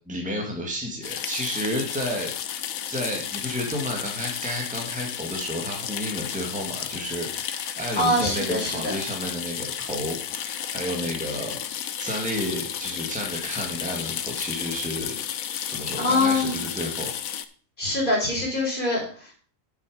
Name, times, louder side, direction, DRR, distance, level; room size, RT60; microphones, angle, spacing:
voice 1, 0.1-2.3 2.9-11.6 12.0-15.2 15.7-17.1, equal, 5° right, -1 dB, 2.0 m, -31 dB
sound 1, 1.0-17.5, left 9 dB, 90° left, 1.2 m, -33 dB
voice 2, 8.0-9.0 16.0-16.6 17.8-19.3, left 2 dB, 35° left, -2 dB, 4.0 m, -24 dB
8.9 x 7.1 x 5.0 m, 0.43 s
omnidirectional pair, 1.4 m